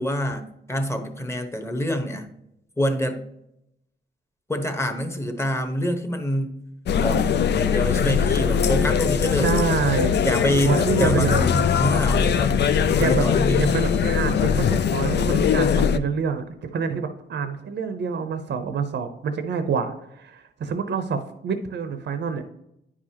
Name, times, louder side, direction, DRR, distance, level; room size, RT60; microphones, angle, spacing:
voice 1, 0.0-2.3 2.8-3.2 4.5-6.6 7.0-7.3 7.6-9.6 10.2-12.6 12.9-13.6, equal, 15° left, 5 dB, 1.0 m, -26 dB
sound 1, 6.9-16.0, left 7 dB, 65° left, 0.4 m, -21 dB
voice 2, 9.4-10.1 10.6-11.5 12.6-13.2 13.5-22.5, right 5 dB, 65° right, 8 dB, 0.7 m, -27 dB
9.9 x 4.9 x 2.9 m, 0.80 s
cardioid pair, 85°, 19 cm